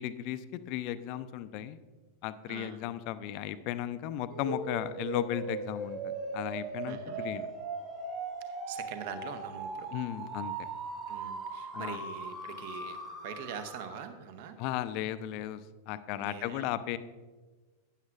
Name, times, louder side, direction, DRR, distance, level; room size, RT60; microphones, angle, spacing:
voice 1, 0.0-1.8 2.2-7.5 9.9-10.7 11.7-12.0 14.6-17.0, left 12 dB, 45° left, 13 dB, 0.4 m, -35 dB
voice 2, 2.5-2.8 6.9-7.3 8.7-9.9 11.1-14.6 16.2-16.7, right 7 dB, 50° right, 9 dB, 0.9 m, -43 dB
sound 1, 4.3-14.1, right 3 dB, 30° right, 2.2 m, -39 dB
12.0 x 9.5 x 2.5 m, 1.3 s
figure-of-eight pair, 90°, 0 cm